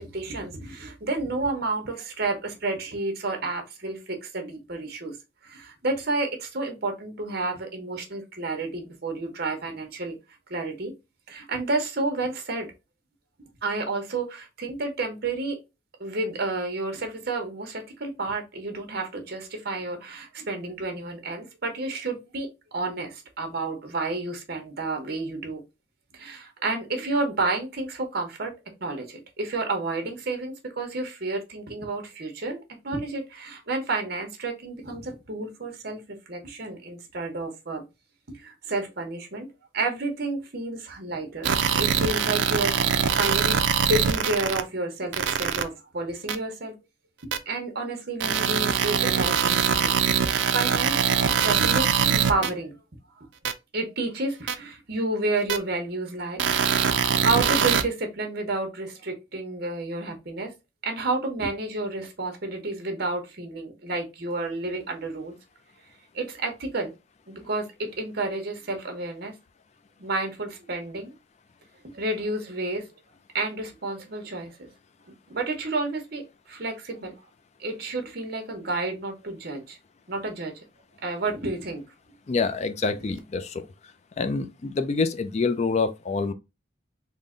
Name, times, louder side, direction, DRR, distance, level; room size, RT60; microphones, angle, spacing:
voice 1, 0.0-5.2 5.4-10.2 10.5-10.9 11.3-12.7 13.6-15.6 16.0-22.5 22.7-25.6 26.1-28.5 28.8-36.0 36.3-37.8 38.3-39.5 39.7-43.6 43.9-46.7 47.5-49.9 50.5-52.8 53.2-53.3 53.7-56.4 56.8-60.5 60.8-65.3 66.1-66.9 67.3-69.3 70.0-71.2 71.8-72.8 73.3-74.7 75.3-77.1 77.6-79.8 80.1-80.6 81.0-81.8, right 2 dB, 55° right, 1.0 m, -30 dB
sound 1, 41.4-44.6 45.1-45.6 46.3-46.4 47.3-47.4 48.2-52.5 53.4-53.5 54.5-54.6 55.5-55.6 56.4-57.8, right 7 dB, 70° right, 0.4 m, -23 dB
voice 2, 82.3-83.6 84.2-86.3, left 4 dB, 35° left, 0.4 m, -26 dB
3.7 x 2.2 x 3.7 m
head